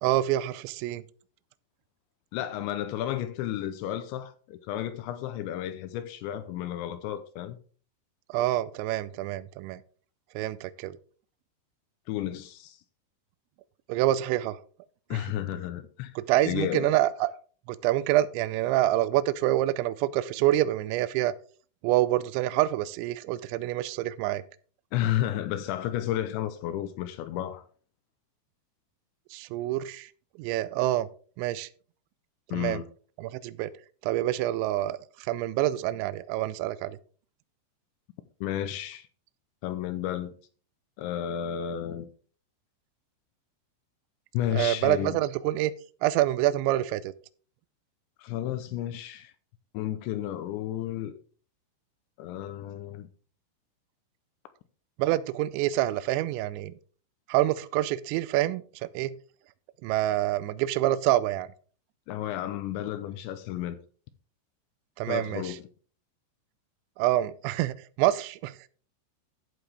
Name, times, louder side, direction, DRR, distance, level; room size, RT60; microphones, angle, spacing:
voice 1, 0.0-1.0 8.3-9.8 10.4-11.0 13.9-14.6 15.1-15.2 16.2-17.3 17.7-21.3 21.8-24.4 29.3-30.1 30.4-31.1 31.4-31.7 32.5-32.8 33.2-33.7 34.0-37.0 44.5-45.7 46.0-47.1 55.0-56.7 57.3-58.6 58.9-59.2 59.8-61.5 65.0-65.6 67.0-68.7, right 14 dB, 85° right, 2.7 m, -27 dB
voice 2, 2.3-7.6 12.1-12.8 15.1-16.1 16.5-17.0 24.9-27.6 32.5-32.9 38.4-39.1 39.6-40.3 41.0-42.1 44.3-45.2 48.2-49.3 49.7-51.1 52.2-53.1 62.1-63.8 65.1-65.6, left 12 dB, 85° left, 2.8 m, -32 dB
11.5 x 8.0 x 3.3 m
omnidirectional pair, 5.6 m